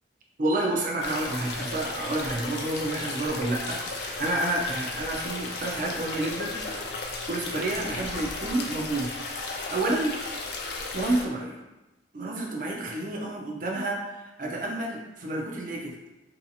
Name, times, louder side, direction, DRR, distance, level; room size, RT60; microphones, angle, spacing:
voice 1, 0.4-6.6 7.3-9.1 9.7-10.2 10.9-11.6 12.1-15.9, right 2 dB, 45° right, 0 dB, 0.4 m, -29 dB
sound 1, 1.0-11.2, left 3 dB, 55° left, 0.4 m, -35 dB
2.7 x 2.7 x 2.3 m, 1.0 s
head